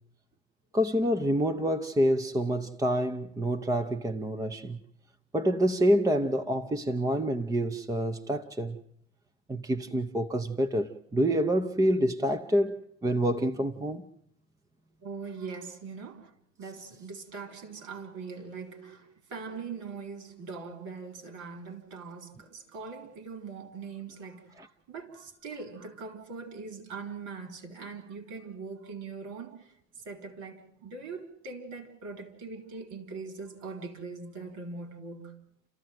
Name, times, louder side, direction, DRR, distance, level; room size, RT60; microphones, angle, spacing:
voice 1, 0.7-4.8 5.3-8.8 9.5-14.0 24.6-24.7, equal, 10° right, 0.8 m, -27 dB
voice 2, 15.0-16.3 16.6-29.7 30.0-35.3, right 4 dB, 50° right, 4.3 m, -41 dB
30.0 x 14.0 x 7.7 m
hypercardioid pair, 100°, 38 cm